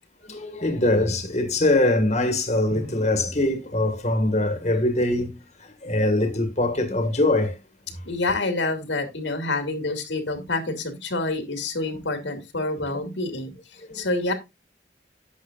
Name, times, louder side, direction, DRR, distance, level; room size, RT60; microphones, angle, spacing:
voice 1, 0.2-7.6 13.9-14.1, left 1 dB, 40° left, 1.8 m, -23 dB
Drum, 2.7-4.7, equal, 55° right, 3.0 m, -43 dB
voice 2, 8.1-14.3, left 2 dB, 90° left, 2.4 m, -27 dB
11.0 x 8.2 x 2.5 m
head